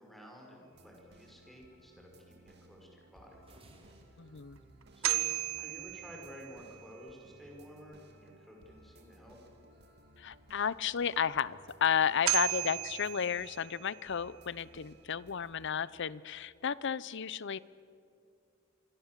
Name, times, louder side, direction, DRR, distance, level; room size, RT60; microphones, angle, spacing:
voice 1, 0.0-3.4 4.9-9.4, equal, ahead, 0 dB, 5.5 m, -52 dB
sound 1, 0.7-15.7, right 1 dB, 55° right, 2.2 m, -60 dB
sound 2, 3.4-5.7, right 1 dB, 30° right, 3.5 m, -62 dB
voice 2, 4.2-4.6 10.2-17.6, left 7 dB, 60° left, 19 dB, 0.7 m, -33 dB
sound 3, 4.8-6.9 11.9-12.0 12.3-14.2, right 14 dB, 80° right, 1.1 m, -35 dB
26.5 x 24.5 x 7.5 m, 2.5 s
head